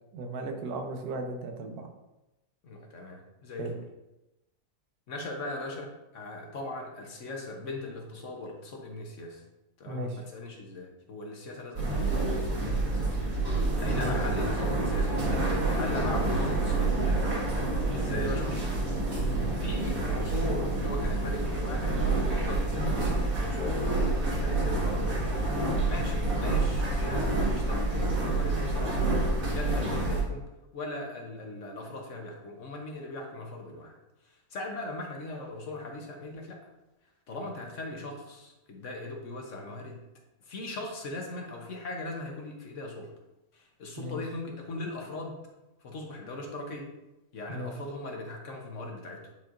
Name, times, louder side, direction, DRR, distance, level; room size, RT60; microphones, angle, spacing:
voice 1, 0.1-1.9 3.6-3.7 9.9-10.2 14.0-14.1 18.1-18.3 19.2-19.5 44.0-44.2 47.5-47.7, right 2 dB, 85° right, 4 dB, 1.3 m, -36 dB
voice 2, 2.6-3.7 5.1-9.4 9.8-17.2 17.9-18.7 19.2-25.5 25.8-30.5 30.7-33.9 34.2-36.6 37.3-40.0 40.5-43.1 43.5-45.4 45.8-46.9 47.3-49.3, left 2 dB, 55° left, 1 dB, 1.3 m, -39 dB
sound 1, 11.8-30.2, right 2 dB, 65° right, 2.0 m, -28 dB
9.2 x 4.4 x 2.5 m, 0.97 s
omnidirectional pair, 1.6 m